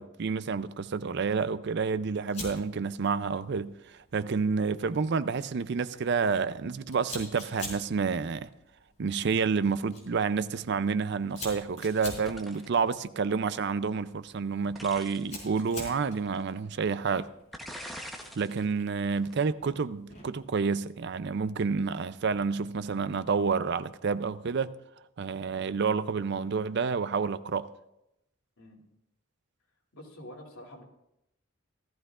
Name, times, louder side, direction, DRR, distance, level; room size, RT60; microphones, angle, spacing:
voice 1, 0.0-8.5 9.0-17.3 18.4-24.7 25.2-27.7, right 5 dB, 55° right, 0.4 m, -29 dB
Fire, 2.3-20.5, left 2 dB, 35° left, 4.3 m, -48 dB
sound 1, 12.3-12.8 14.7-15.4 16.3-16.4 17.5-18.6 19.0-19.3, equal, ahead, 0.9 m, -42 dB
voice 2, 29.9-30.8, left 1 dB, 85° left, 2.8 m, -47 dB
17.5 x 13.5 x 2.4 m
head